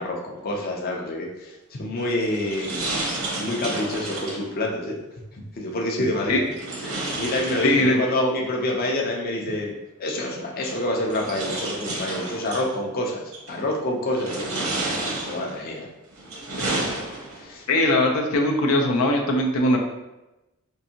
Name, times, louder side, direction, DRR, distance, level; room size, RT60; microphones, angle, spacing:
voice 1, 0.0-3.1 3.4-5.0 5.6-6.4 6.8-9.7 10.0-13.2 13.5-14.5 15.2-15.9 16.6-16.8 17.4-17.7, left 1 dB, 45° left, -1 dB, 0.6 m, -27 dB
sound 1, 2.0-4.5 6.5-8.2 9.5-9.6 10.6-12.7 13.3-13.7 14.1-15.6 16.1-17.5, right 2 dB, 75° right, 0.9 m, -31 dB
voice 2, 7.6-8.0 17.7-19.8, left 1 dB, 90° left, 1 dB, 0.6 m, -20 dB
4.6 x 2.6 x 2.7 m, 0.99 s
head